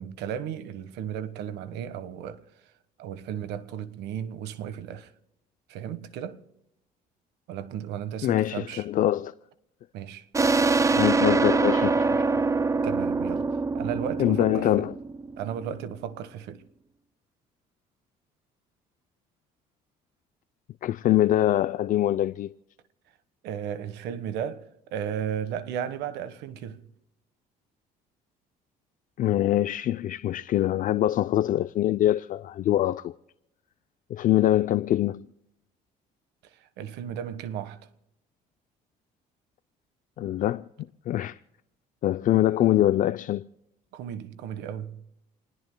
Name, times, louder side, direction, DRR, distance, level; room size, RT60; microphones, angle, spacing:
voice 1, 0.0-2.4 3.0-5.1 5.7-6.4 7.5-8.8 9.9-10.3 12.8-14.9 15.4-16.6 23.4-26.9 36.8-37.8 43.9-45.0, right 9 dB, 90° right, 1.4 m, -35 dB
voice 2, 8.2-9.3 11.0-12.2 14.2-15.0 20.8-22.5 29.2-33.1 34.1-35.3 40.2-40.6 41.1-41.4 42.0-43.5, left 13 dB, 55° left, 0.5 m, -24 dB
sound 1, 10.3-15.7, right 4 dB, 20° right, 0.7 m, -24 dB
29.0 x 20.5 x 2.2 m
cardioid pair, 110°, 17 cm